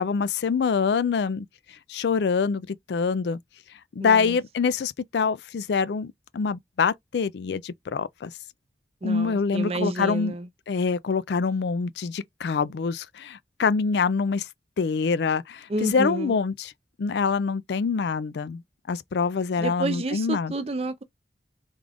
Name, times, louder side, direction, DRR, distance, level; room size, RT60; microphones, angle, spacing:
voice 1, 0.0-1.5 1.9-3.4 3.9-8.3 9.0-10.3 10.7-14.5 14.8-16.7 17.0-18.6 18.9-20.5, left 5 dB, 70° left, 0.4 m, -25 dB
voice 2, 4.0-4.4 9.0-10.5 15.7-16.4 19.6-21.0, right 2 dB, 35° right, 0.5 m, -30 dB
3.5 x 2.4 x 3.4 m
head